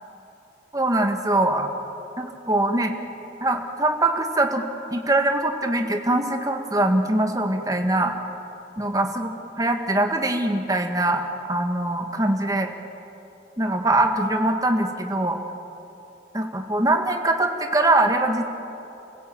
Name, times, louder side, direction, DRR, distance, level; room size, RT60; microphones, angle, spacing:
voice 1, 0.7-1.7 2.2-2.9 3.4-4.6 4.9-8.1 8.8-9.3 9.6-11.2 11.5-12.7 13.6-15.4 16.3-18.4, right 2 dB, 20° right, 4 dB, 1.7 m, -22 dB
29.5 x 15.5 x 8.9 m, 3.0 s
head